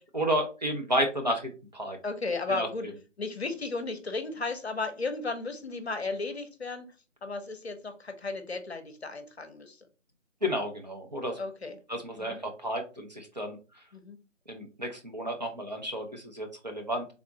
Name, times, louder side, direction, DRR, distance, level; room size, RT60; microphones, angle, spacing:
voice 1, 0.1-2.0 2.5-2.7 10.4-11.4 11.9-13.6 14.5-17.1, equal, 35° right, 2 dB, 0.6 m, -31 dB
voice 2, 2.0-2.9 3.2-6.9 7.2-9.9 11.4-11.8 12.2-12.4 13.9-14.2, left 3 dB, 55° left, 7 dB, 0.7 m, -34 dB
3.5 x 2.4 x 3.7 m, 0.32 s
figure-of-eight pair, 155°, 38 cm